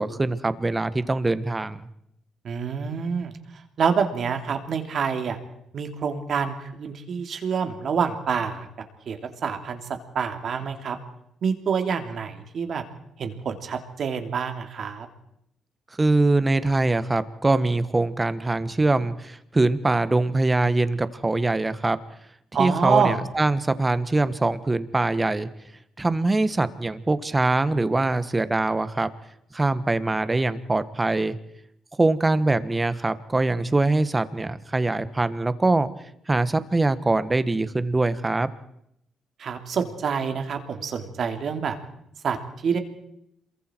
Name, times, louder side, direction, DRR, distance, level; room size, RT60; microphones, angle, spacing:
voice 1, 0.0-1.8 16.0-22.0 22.6-25.5 26.0-29.1 29.5-31.4 32.0-35.9 36.3-38.5, right 2 dB, 20° right, 13 dB, 1.4 m, -23 dB
voice 2, 2.4-3.4 3.8-5.4 5.7-8.7 9.1-9.8 10.1-11.0 11.4-12.8 13.2-15.1 22.5-23.2 39.4-41.8 42.2-42.4 42.6-42.8, right 6 dB, 60° right, 6 dB, 3.0 m, -26 dB
27.5 x 23.0 x 4.6 m, 0.76 s
cardioid pair, 85°, 0 cm